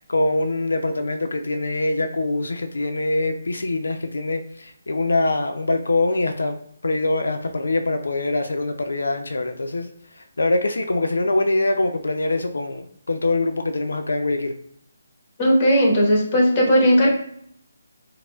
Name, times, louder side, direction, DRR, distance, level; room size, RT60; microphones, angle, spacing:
voice 1, 0.0-6.6 6.8-9.9 10.2-14.5, left 2 dB, 90° left, 6 dB, 0.4 m, -23 dB
voice 2, 15.4-17.1, equal, 25° left, -1 dB, 1.0 m, -17 dB
4.3 x 2.0 x 2.2 m, 0.68 s
hypercardioid pair, 165°, 0 cm